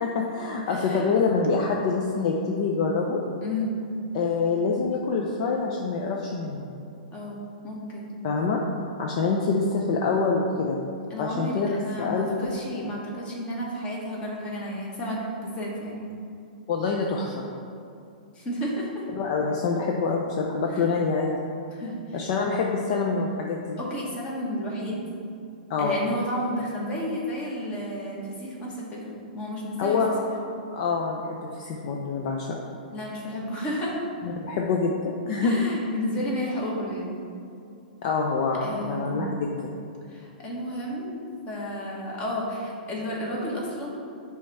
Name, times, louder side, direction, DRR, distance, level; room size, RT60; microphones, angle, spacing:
voice 1, 0.0-3.2 4.1-6.7 8.2-8.6 9.0-10.8 11.2-12.9 16.7-17.5 19.2-21.3 22.1-23.8 25.7-26.0 29.8-30.1 30.7-32.5 34.2-35.5 38.0-39.3 39.6-39.8, left 4 dB, 45° left, 0 dB, 0.6 m, -26 dB
voice 2, 0.7-1.0 3.4-3.8 7.1-8.1 11.1-16.1 18.3-19.1 20.7-20.9 21.7-22.2 23.8-25.0 25.8-30.3 32.9-34.0 35.4-37.1 38.6-39.3 40.1-44.0, equal, 25° left, -3 dB, 1.4 m, -32 dB
6.3 x 3.5 x 5.5 m, 2.6 s
hypercardioid pair, 150°, 5 cm